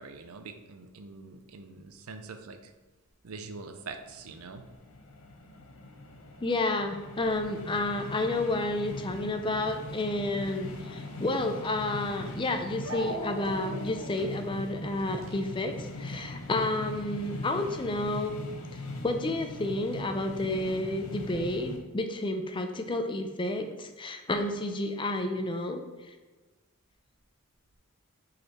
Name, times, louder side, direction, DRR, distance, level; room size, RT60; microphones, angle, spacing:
voice 1, 0.0-2.7 3.2-4.6, right 4 dB, 85° right, 7 dB, 0.6 m, -44 dB
sound 1, 4.0-21.8, left 2 dB, 75° left, 0.8 m, -41 dB
voice 2, 6.4-18.4 18.7-26.2, left 2 dB, 20° left, 6 dB, 0.5 m, -31 dB
Dog, 11.8-11.9 12.8-16.2, right 1 dB, 70° right, 1.0 m, -40 dB
5.4 x 4.1 x 4.2 m, 1.2 s
head